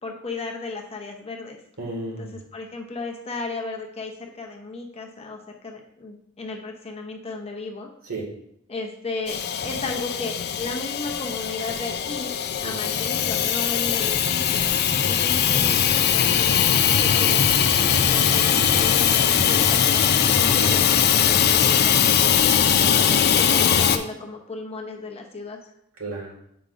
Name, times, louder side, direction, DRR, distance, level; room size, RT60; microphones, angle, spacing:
voice 1, 0.0-1.6 2.2-7.9 8.7-12.3 12.6-14.7 15.0-22.5 23.4-25.6, left 3 dB, 30° left, 2 dB, 0.8 m, -35 dB
voice 2, 1.8-2.4 8.1-8.2 12.6-12.9 20.5-20.7 22.9-23.4 26.0-26.3, right 2 dB, 85° right, -2 dB, 1.8 m, -33 dB
Hiss / Toilet flush / Trickle dribble, 9.3-24.0, left 8 dB, 50° left, 0.4 m, -20 dB
7.9 x 5.0 x 2.5 m, 0.75 s
head